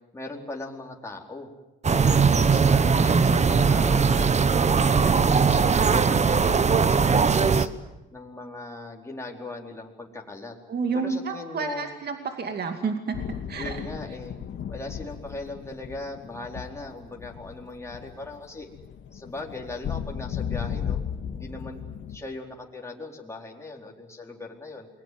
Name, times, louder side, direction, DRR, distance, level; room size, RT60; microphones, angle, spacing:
voice 1, 0.1-1.5 1.8-4.3 4.7-7.7 8.1-10.5 10.9-11.9 13.6-14.4 14.7-18.7 19.1-21.0 21.3-24.9, left 2 dB, 15° left, -1 dB, 4.4 m, -39 dB
sound 1, 1.8-7.7, right 5 dB, 35° right, 1.2 m, -20 dB
voice 2, 10.7-13.2 13.5-13.8, right 5 dB, 55° right, 5 dB, 2.4 m, -30 dB
sound 2, 13.1-22.2, left 8 dB, 70° left, 2.1 m, -35 dB
28.5 x 22.0 x 7.8 m, 0.97 s
cardioid pair, 90°, 20 cm